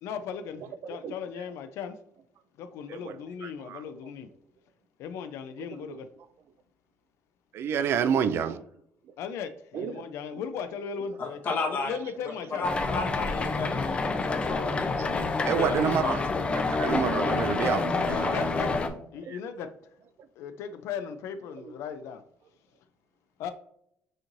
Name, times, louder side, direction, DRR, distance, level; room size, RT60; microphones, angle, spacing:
voice 1, 0.0-2.0 2.6-4.3 5.0-6.1 9.2-12.7 17.2-17.4 17.9-20.0 20.4-22.2 23.4-23.5, left 7 dB, 80° left, 0.4 m, -37 dB
voice 2, 2.9-3.8 5.9-6.0 7.5-8.6 9.7-10.0 14.6-15.1 15.5-16.2 16.7-18.5 19.3-19.4 21.6-21.7, right 7 dB, 60° right, 0.3 m, -29 dB
voice 3, 11.2-11.9 12.5-14.8 15.1-15.8 16.0-16.1, left 3 dB, 45° left, 1.2 m, -33 dB
sound 1, 12.6-18.9, left 3 dB, 25° left, 0.5 m, -28 dB
6.3 x 3.0 x 2.6 m
cardioid pair, 135°, 5 cm